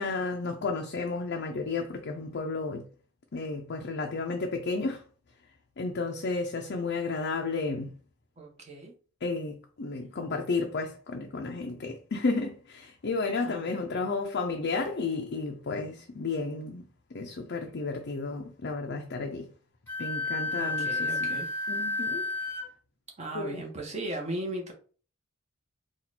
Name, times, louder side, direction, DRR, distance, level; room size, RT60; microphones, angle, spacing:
voice 1, 0.0-2.9 3.3-5.0 5.8-7.9 9.2-16.8 17.1-19.5 20.0-21.4 21.7-22.3 23.3-23.6, left 3 dB, 55° left, 0.6 m, -32 dB
voice 2, 8.4-8.9 9.9-10.4 13.3-14.1 20.5-21.5 22.5-22.6 23.2-24.7, right 1 dB, 35° right, 1.2 m, -38 dB
Wind instrument woodwind instrument, 19.9-22.7, left 2 dB, 10° left, 1.0 m, -31 dB
4.2 x 2.5 x 4.1 m
head